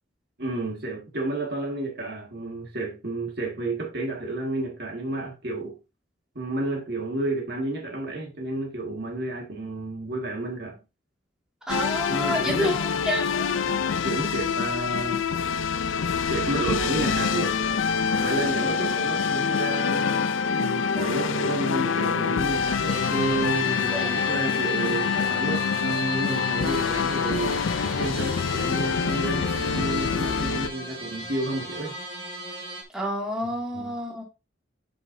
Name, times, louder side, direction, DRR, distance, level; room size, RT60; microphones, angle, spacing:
voice 1, 0.4-5.8 6.4-10.8 12.1-12.8 13.6-15.2 16.3-17.6 18.2-27.6 28.0-32.0 33.7-33.9, right 2 dB, 55° right, 1.8 m, -31 dB
sound 1, 11.7-30.7, left 6 dB, 80° left, 0.5 m, -26 dB
voice 2, 11.7-13.6 23.9-24.1 32.9-34.2, left 1 dB, 5° right, 2.3 m, -29 dB
sound 2, 22.9-32.8, right 1 dB, 25° right, 2.0 m, -38 dB
9.9 x 5.4 x 2.7 m
head